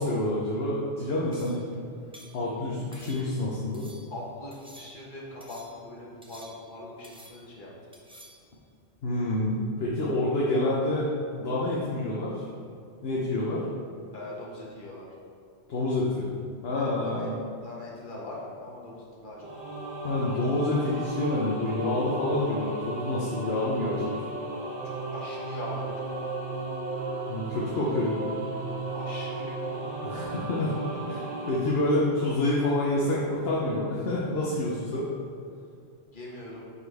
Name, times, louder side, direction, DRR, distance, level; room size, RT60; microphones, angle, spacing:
voice 1, 0.0-1.6 2.3-3.9 9.0-11.1 11.3-12.4 13.0-13.6 15.7-16.3 16.6-17.3 20.0-24.1 27.3-28.3 30.0-30.8 31.1-35.1, left 1 dB, 60° left, -5 dB, 1.1 m, -28 dB
sound 1, 1.3-1.7 2.1-2.4 2.9-3.4 3.7-4.1 4.5-5.1 5.4-5.8 6.2-6.8 7.0-7.6 7.9-8.5, right 1 dB, 5° right, 0.6 m, -51 dB
voice 2, 4.1-7.7 14.1-15.1 16.7-17.3 17.6-19.4 24.8-26.1 26.5-26.6 28.9-30.1 30.6-30.7 31.1-31.2 36.1-36.7, left 2 dB, 45° left, -4 dB, 1.5 m, -41 dB
sound 2, 19.4-31.6, right 2 dB, 75° right, 1.9 m, -35 dB
9.3 x 4.3 x 3.5 m, 2.5 s
omnidirectional pair, 1.2 m